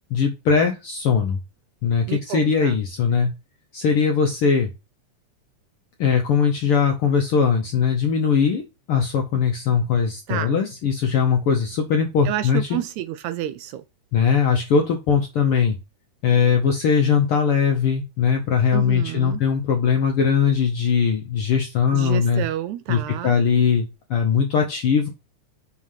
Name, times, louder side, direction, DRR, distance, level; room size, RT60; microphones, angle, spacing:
voice 1, 0.1-1.4 1.8-3.3 3.7-4.7 6.0-8.6 8.9-12.6 14.1-15.8 16.2-22.4 22.9-25.1, left 6 dB, 70° left, 1.3 m, -20 dB
voice 2, 2.1-2.8 10.3-10.6 12.3-13.8 18.7-19.4 21.9-23.4, right 12 dB, 80° right, 1.7 m, -29 dB
6.2 x 3.7 x 5.6 m
omnidirectional pair, 3.5 m